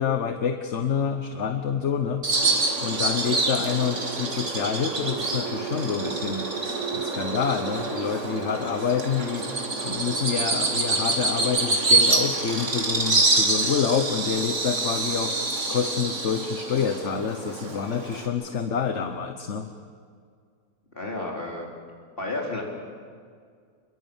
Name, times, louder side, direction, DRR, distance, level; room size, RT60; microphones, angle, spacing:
voice 1, 0.0-2.2 2.8-6.5 6.9-9.5 9.8-15.4 15.7-19.7, left 7 dB, 50° left, 7 dB, 1.2 m, -27 dB
Bird vocalization bird call bird song, 2.2-18.3, right 3 dB, 45° right, 2.8 m, -26 dB
voice 2, 20.9-21.7 22.2-22.6, left 2 dB, 35° left, -1 dB, 4.5 m, -31 dB
28.5 x 22.0 x 7.2 m, 2.1 s
omnidirectional pair, 1.7 m